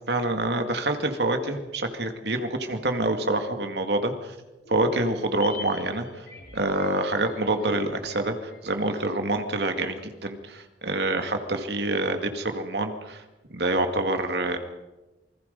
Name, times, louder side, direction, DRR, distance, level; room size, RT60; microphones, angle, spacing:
voice 1, 0.1-4.4 4.7-6.3 6.5-13.2 13.5-14.6, right 2 dB, 60° right, 6 dB, 2.3 m, -26 dB
sound 1, 4.7-9.2 9.4-9.5, left 4 dB, 55° left, 4.2 m, -44 dB
27.5 x 20.5 x 5.4 m, 1.1 s
head